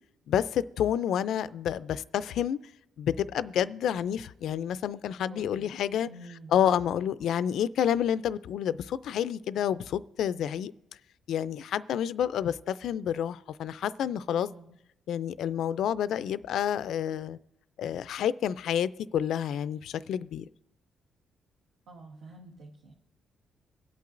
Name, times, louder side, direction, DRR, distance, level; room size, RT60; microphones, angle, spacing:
voice 1, 0.3-2.6 3.0-6.1 6.5-10.7 11.3-14.5 15.1-17.4 17.8-20.5, left 9 dB, 75° left, 0.3 m, -29 dB
voice 2, 5.3-5.7 6.1-6.6 14.3-14.8 21.9-22.9, right 2 dB, 85° right, 1.2 m, -48 dB
23.0 x 8.5 x 2.5 m
cardioid pair, 90°, 0 cm